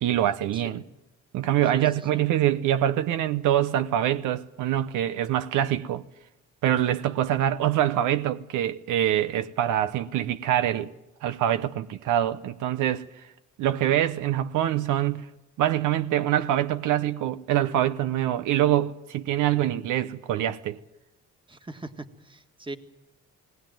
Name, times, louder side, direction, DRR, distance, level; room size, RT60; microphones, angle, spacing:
voice 1, 0.0-0.8 1.3-6.0 6.6-10.9 11.2-13.1 13.6-15.2 15.6-20.8, right 12 dB, 85° right, 0.8 m, -25 dB
voice 2, 0.5-0.8 1.7-2.3 21.5-22.8, right 2 dB, 15° right, 1.7 m, -41 dB
19.0 x 18.5 x 9.1 m
cardioid pair, 90°, 30 cm